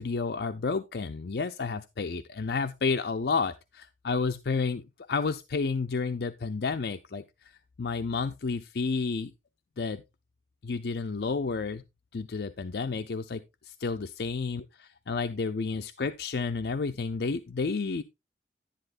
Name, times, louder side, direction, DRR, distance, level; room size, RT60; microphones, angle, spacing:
voice 1, 0.0-7.5 7.8-9.3 9.8-10.0 10.6-11.8 12.1-14.6 15.1-18.0, left 4 dB, 65° left, 0.5 m, -31 dB
10.5 x 10.0 x 2.5 m
head